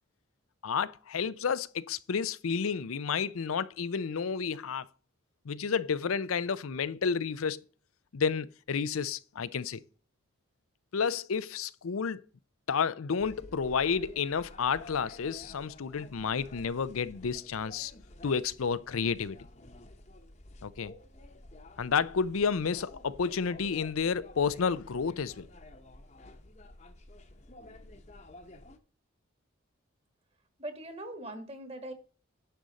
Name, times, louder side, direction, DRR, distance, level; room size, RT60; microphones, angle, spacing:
voice 1, 0.6-4.9 5.5-7.6 8.1-9.8 10.9-12.2 12.7-17.9 18.2-19.4 20.6-20.9 21.8-25.5, left 6 dB, 85° left, 0.5 m, -31 dB
sound 1, 13.2-28.8, left 1 dB, 35° left, 0.9 m, -52 dB
voice 2, 30.6-31.9, right 1 dB, 30° right, 1.5 m, -41 dB
10.0 x 6.3 x 4.1 m
head